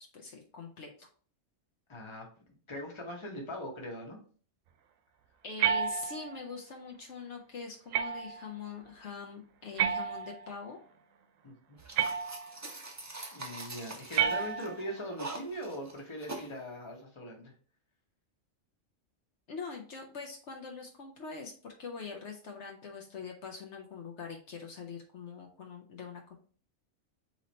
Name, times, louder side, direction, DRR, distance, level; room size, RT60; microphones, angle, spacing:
voice 1, 0.1-1.1 5.4-10.8 19.5-26.4, left 5 dB, 65° left, 1 dB, 0.9 m, -43 dB
voice 2, 1.9-2.3 2.7-4.2 11.4-11.8 13.3-17.5, equal, 25° left, 1 dB, 1.0 m, -41 dB
sound 1, 5.6-6.5 7.9-8.5 9.8-10.6 12.0-12.7 14.1-15.0, right 7 dB, 90° right, 1.0 m, -31 dB
sound 2, 11.8-16.5, right 2 dB, 30° right, 0.3 m, -44 dB
3.9 x 3.1 x 4.0 m, 0.43 s
omnidirectional pair, 1.3 m